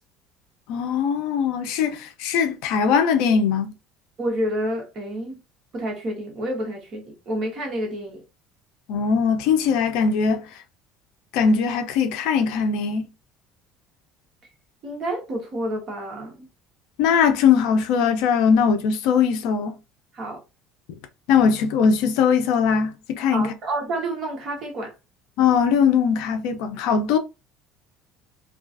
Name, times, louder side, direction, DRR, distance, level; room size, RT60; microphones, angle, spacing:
voice 1, 0.7-3.7 8.9-10.4 11.3-13.1 17.0-19.8 21.3-23.5 25.4-27.2, left 6 dB, 70° left, 0.4 m, -20 dB
voice 2, 4.2-5.4 5.7-8.2 14.8-16.5 20.1-20.4 23.3-24.9, right 1 dB, 35° right, 0.8 m, -29 dB
2.4 x 2.3 x 2.4 m
cardioid pair, 170°, 0 cm